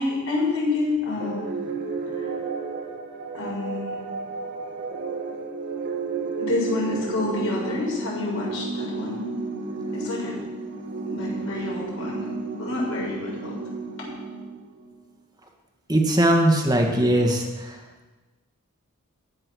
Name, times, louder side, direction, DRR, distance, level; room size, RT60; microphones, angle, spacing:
voice 1, 0.0-1.4 2.1-2.3 3.3-4.0 6.4-9.2 9.9-10.4 11.0-12.3 12.6-13.6, left 3 dB, 65° left, -3 dB, 6.4 m, -28 dB
sound 1, 1.2-14.9, right 4 dB, 50° right, 2.0 m, -32 dB
voice 2, 15.9-17.8, right 1 dB, 20° right, 2 dB, 2.1 m, -20 dB
15.5 x 10.5 x 6.4 m, 1.2 s
head